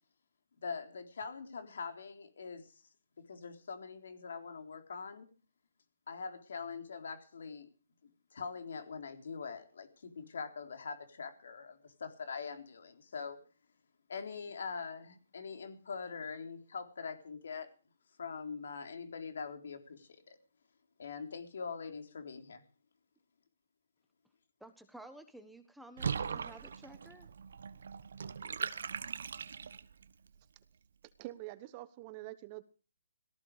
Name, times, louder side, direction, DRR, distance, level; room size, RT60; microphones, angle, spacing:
voice 1, 0.6-2.7 3.3-5.3 6.1-7.7 8.3-13.4 14.1-17.7 18.2-20.4 21.0-22.6, left 5 dB, 65° left, 3.8 m, -43 dB
voice 2, 24.6-27.3, right 1 dB, ahead, 1.3 m, -53 dB
Water / Bathtub (filling or washing), 26.0-30.0, right 6 dB, 65° right, 1.1 m, -39 dB
voice 3, 31.2-32.6, right 17 dB, 30° right, 1.0 m, -45 dB
18.0 x 14.5 x 4.9 m
hypercardioid pair, 155°, 0 cm